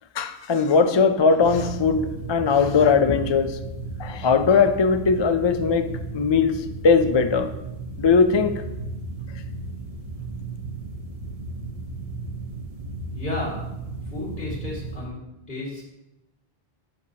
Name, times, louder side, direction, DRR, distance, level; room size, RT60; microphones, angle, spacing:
voice 1, 0.2-3.6 4.0-7.5 8.0-8.6, left 5 dB, 45° left, 9 dB, 0.3 m, -20 dB
sound 1, 1.4-15.1, right 2 dB, 40° right, 0.8 m, -35 dB
voice 2, 13.1-13.7 14.1-15.2 15.5-15.8, left 2 dB, 70° left, -5 dB, 2.6 m, -32 dB
9.6 x 6.3 x 2.8 m, 0.90 s
omnidirectional pair, 1.0 m